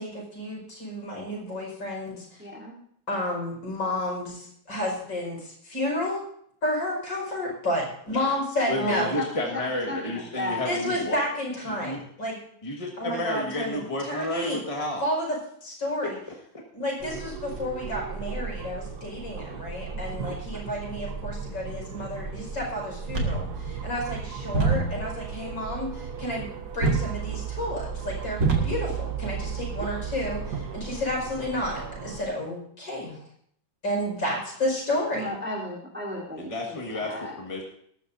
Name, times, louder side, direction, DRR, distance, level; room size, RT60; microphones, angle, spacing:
voice 1, 0.0-2.3 3.1-6.2 6.6-9.1 10.6-12.4 13.0-14.6 15.0-15.4 15.6-16.2 16.7-33.2 33.8-35.3, left 1 dB, 65° left, -2 dB, 5.9 m, -31 dB
voice 2, 2.4-2.8 8.7-9.5 9.7-11.1 35.1-37.3, left 1 dB, 5° right, -5 dB, 3.3 m, -34 dB
voice 3, 8.7-11.2 11.7-12.0 12.6-15.0 36.4-37.6, left 1 dB, 20° left, -1 dB, 1.6 m, -31 dB
sound 1, 17.0-32.2, right 5 dB, 60° right, 1.4 m, -37 dB
sound 2, 23.1-30.5, right 4 dB, 45° right, 2.3 m, -30 dB
20.0 x 12.5 x 2.7 m, 0.65 s
omnidirectional pair, 2.2 m